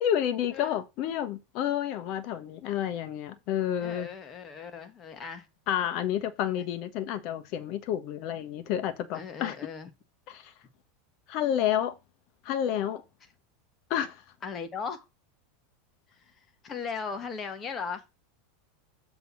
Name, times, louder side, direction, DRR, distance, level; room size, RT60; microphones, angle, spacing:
voice 1, 0.0-4.1 5.7-9.6 10.3-10.5 11.3-12.0 12.4-13.0 13.9-14.2, left 10 dB, 50° left, 1.2 m, -30 dB
voice 2, 3.8-5.5 9.1-9.9 14.4-15.0 16.6-18.0, left 5 dB, 25° left, 1.5 m, -37 dB
7.7 x 3.8 x 6.0 m
supercardioid pair, 125°, 0 cm